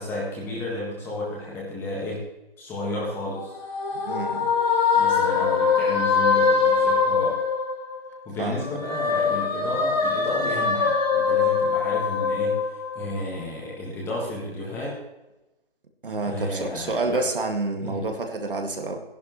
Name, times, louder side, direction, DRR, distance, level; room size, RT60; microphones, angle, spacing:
voice 1, 0.0-2.3 2.6-3.5 4.9-7.3 8.2-14.9 16.2-17.3 17.8-18.2, left 2 dB, 5° left, -4 dB, 1.5 m, -32 dB
sound 1, 3.2-8.1 8.5-13.3, left 5 dB, 45° left, 3.4 m, -23 dB
voice 2, 4.0-4.5 8.4-8.6 16.0-19.0, right 3 dB, 60° right, 3 dB, 1.9 m, -28 dB
14.0 x 11.0 x 3.1 m, 0.98 s
figure-of-eight pair, 155°, 30 cm